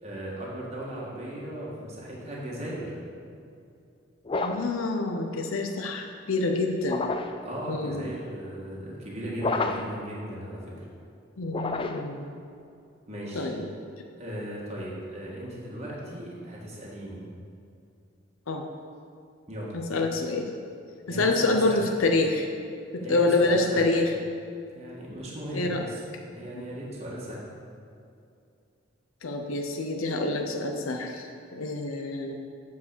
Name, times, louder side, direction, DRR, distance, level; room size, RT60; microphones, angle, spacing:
voice 1, 0.0-2.9 7.4-10.7 13.1-13.5 14.2-17.2 19.5-19.7 21.1-21.8 23.0-23.9 24.7-27.4, right 1 dB, 30° right, -5 dB, 1.6 m, -37 dB
sound 1, 4.3-4.8 6.8-7.5 9.4-10.0 11.5-12.2, left 3 dB, 25° left, 0.3 m, -30 dB
voice 2, 4.4-7.0 7.7-8.1 11.4-12.3 13.3-13.7 18.5-18.7 19.7-20.5 21.1-22.5 22.9-24.1 25.5-25.8 29.2-32.3, left 2 dB, 85° left, 3 dB, 0.7 m, -27 dB
8.4 x 4.8 x 6.8 m, 2.5 s
head